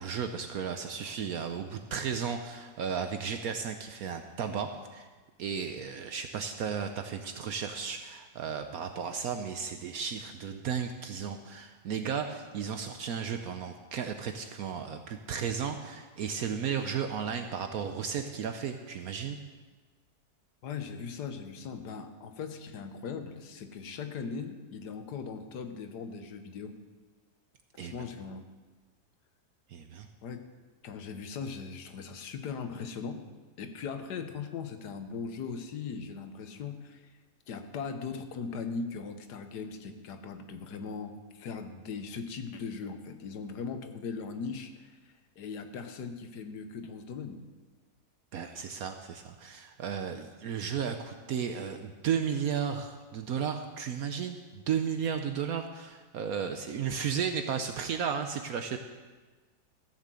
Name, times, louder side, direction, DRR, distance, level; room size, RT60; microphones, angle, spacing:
voice 1, 0.0-5.1 5.4-19.4 27.8-27.9 29.7-30.1 48.3-58.8, right 7 dB, 70° right, 7 dB, 1.1 m, -34 dB
voice 2, 20.6-26.7 27.8-28.5 30.2-30.5 30.8-33.2 33.6-37.1 37.5-47.4, left 5 dB, 90° left, 7 dB, 1.6 m, -39 dB
15.0 x 6.6 x 7.5 m, 1.3 s
omnidirectional pair, 1.7 m